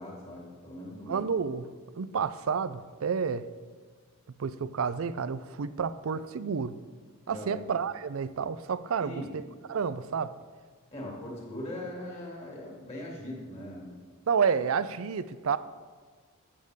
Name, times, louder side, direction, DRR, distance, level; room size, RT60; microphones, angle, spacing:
voice 1, 0.0-1.2 7.3-7.6 9.0-9.3 10.9-14.0, left 1 dB, 30° left, -3 dB, 2.6 m, -40 dB
voice 2, 1.1-1.7 2.0-3.5 4.4-6.8 7.3-9.4 9.7-10.3 14.3-15.6, right 6 dB, 75° right, 15 dB, 0.4 m, -30 dB
13.0 x 8.3 x 3.6 m, 1.5 s
head